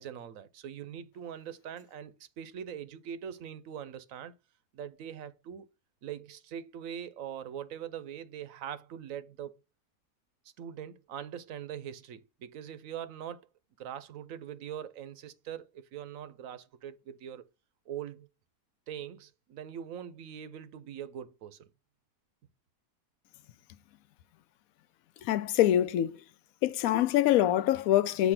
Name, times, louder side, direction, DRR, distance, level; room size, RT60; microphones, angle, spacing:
voice 1, 0.0-4.3 4.7-5.7 6.0-9.6 10.6-13.5 13.8-17.5 17.9-18.3 18.9-21.7, right 9 dB, 65° right, 1.0 m, -42 dB
voice 2, 25.2-26.2 26.6-28.3, left 12 dB, 70° left, 0.9 m, -25 dB
8.2 x 2.8 x 5.7 m
omnidirectional pair, 1.7 m